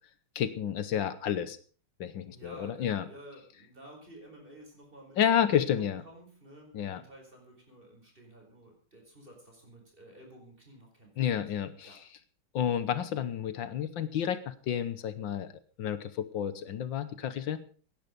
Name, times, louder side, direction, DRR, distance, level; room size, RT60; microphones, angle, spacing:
voice 1, 0.3-1.6 2.0-3.0 5.2-6.0 6.7-7.0 11.2-12.0 12.5-17.6, left 9 dB, 70° left, 13 dB, 1.6 m, -30 dB
voice 2, 2.3-5.2 5.4-11.4 11.8-12.0, right 1 dB, 25° right, 1 dB, 4.9 m, -52 dB
17.0 x 10.5 x 5.2 m, 0.41 s
omnidirectional pair, 2.2 m